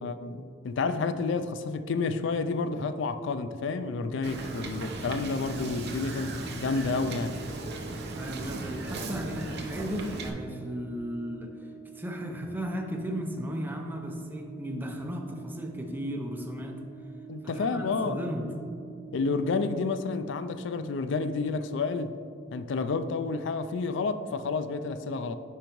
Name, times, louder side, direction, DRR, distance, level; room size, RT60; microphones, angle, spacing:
voice 1, 0.0-7.4 17.3-18.2 19.1-22.2 22.5-25.4, left 4 dB, 70° left, 12 dB, 0.4 m, -30 dB
Brass instrument, 3.6-20.0, right 8 dB, 40° left, 1.2 m, -47 dB
Wind / Boat Water vehicle, 4.2-10.3, right 2 dB, 60° right, 0.7 m, -37 dB
voice 2, 8.1-11.5 11.9-16.8 17.4-18.5, equal, 10° right, 2 dB, 0.6 m, -35 dB
10.0 x 4.7 x 3.0 m, 2.6 s
head